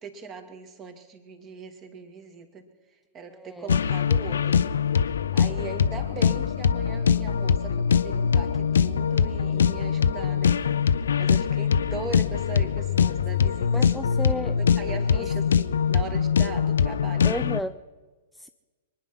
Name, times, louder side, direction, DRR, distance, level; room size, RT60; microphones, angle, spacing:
voice 1, 0.0-2.7 3.1-4.6 5.3-10.7 11.2-14.2 14.6-17.4, right 5 dB, 25° right, 6 dB, 2.3 m, -40 dB
voice 2, 3.3-3.7 13.7-14.6 15.1-15.3 17.2-17.8 18.3-18.5, left 1 dB, ahead, 9 dB, 0.4 m, -33 dB
sound 1, 3.7-17.6, left 7 dB, 65° left, 0.6 m, -23 dB
24.0 x 10.0 x 6.0 m, 1.3 s
figure-of-eight pair, 105°, 0 cm